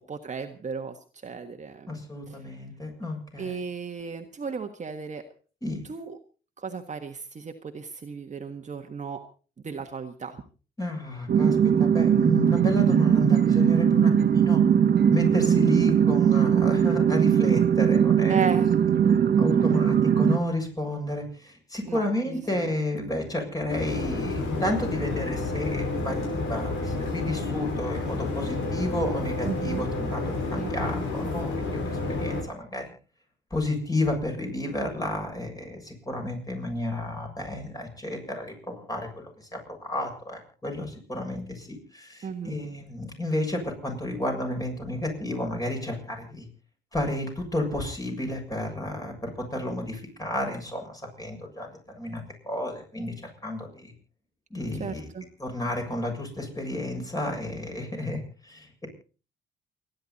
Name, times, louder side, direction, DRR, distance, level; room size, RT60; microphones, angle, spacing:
voice 1, 0.1-1.0 1.2-2.0 2.3-2.4 3.4-5.2 5.9-6.2 6.6-9.2 9.6-10.4 18.3-18.7 21.8-22.8 29.4-29.9 30.6-31.0 42.2-42.6 54.8-55.3, right 6 dB, 35° right, 5 dB, 1.6 m, -35 dB
voice 2, 1.9-3.6 5.6-5.8 10.8-14.6 15.1-18.4 19.4-32.9 33.5-46.5 46.9-51.7 51.9-53.1 53.4-53.9 54.5-55.1 55.4-58.9, left 1 dB, 20° left, 2 dB, 7.1 m, -32 dB
sound 1, 11.3-20.4, right 8 dB, 55° right, 1.5 m, -20 dB
sound 2, 23.7-32.4, left 3 dB, 85° left, 5.1 m, -30 dB
29.0 x 10.5 x 4.2 m, 0.38 s
cardioid pair, 90°, 20 cm